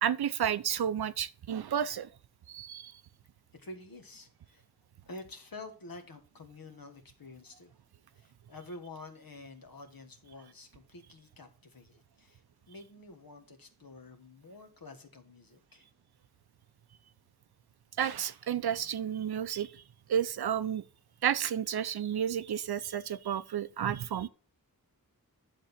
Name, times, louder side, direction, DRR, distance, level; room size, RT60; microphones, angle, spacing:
voice 1, 0.0-2.1 2.5-2.9 18.0-19.8 20.1-20.8 21.2-24.3, right 9 dB, 85° right, 0.5 m, -31 dB
voice 2, 3.5-4.6 5.1-7.7 8.1-15.9, left 2 dB, 65° left, 1.5 m, -49 dB
10.0 x 3.8 x 5.7 m
wide cardioid pair, 85°, 37 cm